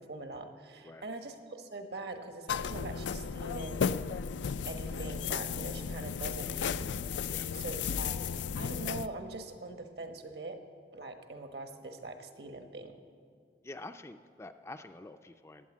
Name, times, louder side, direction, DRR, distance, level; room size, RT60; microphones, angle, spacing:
voice 1, 0.0-3.9 4.7-6.9 7.5-8.2 8.6-10.6 10.9-13.0, right 2 dB, 65° right, 6 dB, 1.3 m, -43 dB
sound 1, 2.5-9.1, left 6 dB, 90° left, 0.4 m, -34 dB
voice 2, 13.6-15.7, left 2 dB, 15° left, 8 dB, 0.4 m, -47 dB
15.5 x 9.4 x 8.4 m, 2.2 s
head